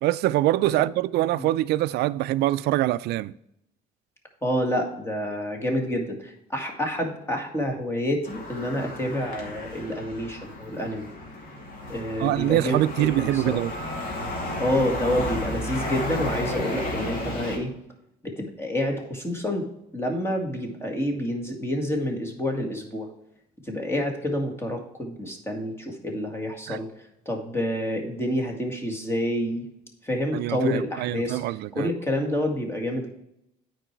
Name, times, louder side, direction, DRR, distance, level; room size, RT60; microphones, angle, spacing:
voice 1, 0.0-3.3 12.2-13.7 26.7-26.8 30.3-31.9, right 15 dB, 75° right, 0.4 m, -24 dB
voice 2, 4.4-11.1 11.9-13.6 14.6-17.7 18.2-19.7 19.9-23.1 23.6-26.9 27.3-29.6 30.0-31.4 31.7-33.1, left 1 dB, 15° left, 1.9 m, -28 dB
sound 1, 8.2-17.6, left 1 dB, 55° left, 2.4 m, -33 dB
8.9 x 4.7 x 4.6 m
cardioid pair, 110°, 17 cm